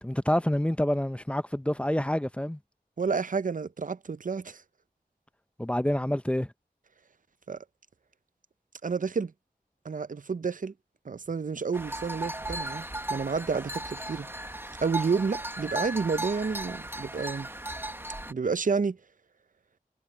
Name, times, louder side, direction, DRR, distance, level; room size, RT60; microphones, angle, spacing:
voice 1, 0.0-2.6 5.6-6.5, left 1 dB, 5° left, 0.5 m, -27 dB
voice 2, 3.0-4.6 7.5-7.6 8.8-9.3 9.8-10.7 11.1-12.8 13.1-14.3 14.8-17.5 18.3-19.0, right 5 dB, 55° right, 0.5 m, -30 dB
sound 1, 11.7-18.3, right 1 dB, 15° right, 1.0 m, -36 dB
wide cardioid pair, 55°, 16 cm